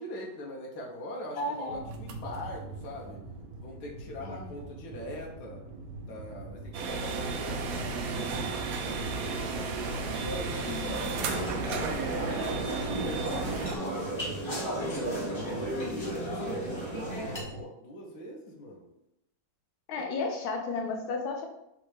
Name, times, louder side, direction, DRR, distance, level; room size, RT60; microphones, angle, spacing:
voice 1, 0.0-3.2 3.6-5.6 6.0-8.5 8.8-11.2 12.1-12.6 12.9-14.4 14.7-17.2 17.5-18.9 20.0-20.1, equal, 60° left, -1 dB, 1.3 m, -42 dB
voice 2, 1.4-1.8 4.2-4.5 10.7-11.1 19.9-21.4, left 3 dB, 85° left, 1 dB, 1.6 m, -33 dB
sound 1, 1.7-17.6, right 2 dB, 70° right, 1.1 m, -44 dB
sound 2, 6.7-13.8, right 4 dB, 90° right, 0.7 m, -33 dB
sound 3, 11.1-17.4, right 1 dB, 20° left, 0.7 m, -34 dB
4.2 x 2.4 x 4.7 m, 0.85 s
omnidirectional pair, 2.2 m